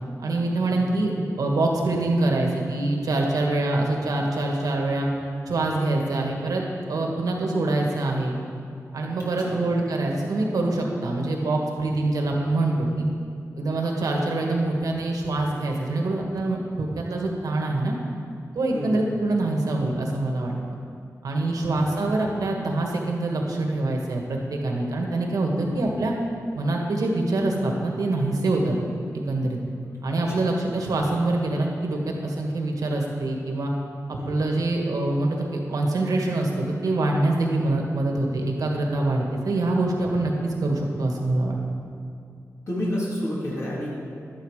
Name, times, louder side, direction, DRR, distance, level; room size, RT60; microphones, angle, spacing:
voice 1, 0.2-5.1 5.5-8.3 8.9-13.1 13.6-17.9 18.5-20.5 21.2-26.1 26.5-28.8 29.1-29.6 30.0-33.7 34.2-41.6, right 2 dB, 80° right, 0 dB, 1.7 m, -25 dB
voice 2, 9.2-9.6 18.7-19.0 21.6-21.9 25.6-25.7 30.3-30.5 34.2-34.3 42.7-43.9, left 1 dB, 55° left, -7 dB, 2.8 m, -31 dB
11.5 x 9.3 x 4.9 m, 2.4 s
cardioid pair, 65°, 6 cm